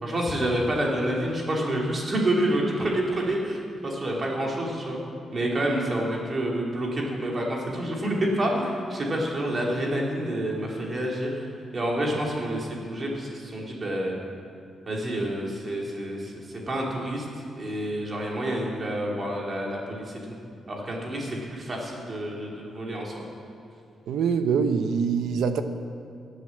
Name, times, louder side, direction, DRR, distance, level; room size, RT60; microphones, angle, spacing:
voice 1, 0.0-5.0 5.3-11.5 11.7-14.2 14.9-17.2 17.6-20.2 20.7-23.2, right 1 dB, 35° right, -2 dB, 3.2 m, -28 dB
voice 2, 24.1-25.6, right 6 dB, 90° right, 8 dB, 0.9 m, -24 dB
18.0 x 8.2 x 7.5 m, 2.4 s
cardioid pair, 120°, 0 cm